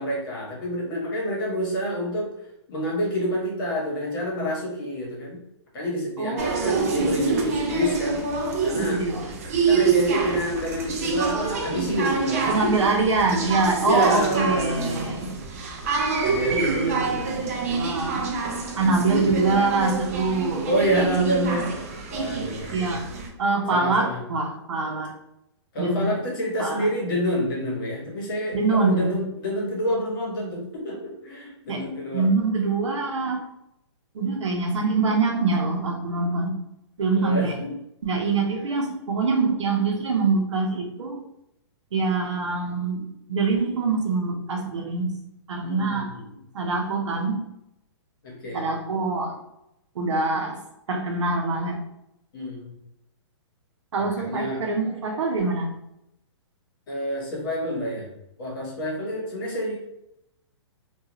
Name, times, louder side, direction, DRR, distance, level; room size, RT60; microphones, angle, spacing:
voice 1, 0.0-2.3 2.7-5.4 5.7-8.2 8.6-9.0 9.7-12.9 13.8-15.1 16.2-17.2 18.8-19.2 20.7-21.7 22.1-23.0 23.7-24.2 25.7-32.3 37.1-37.7 45.6-46.3 48.2-48.7 52.3-52.7 54.0-54.6 56.9-58.1 58.4-59.7, equal, 45° left, -3 dB, 1.1 m, -28 dB
voice 2, 6.2-7.1 8.7-9.4 9.7-9.8 12.5-15.3 16.5-18.3 18.8-21.6 22.7-23.0 23.4-25.1 25.8-26.1 26.6-26.9 28.5-29.2 31.7-31.8 32.1-33.4 34.1-36.6 37.0-37.6 38.0-41.2 41.9-45.1 45.5-46.1 46.5-47.4 48.5-49.3 50.0-50.6 50.9-51.8 53.9-55.7, right 3 dB, 75° right, 2 dB, 0.7 m, -25 dB
sound 1, 6.4-23.3, right 5 dB, 30° right, 0.3 m, -27 dB
2.3 x 2.3 x 2.9 m, 0.83 s
hypercardioid pair, 160°, 15 cm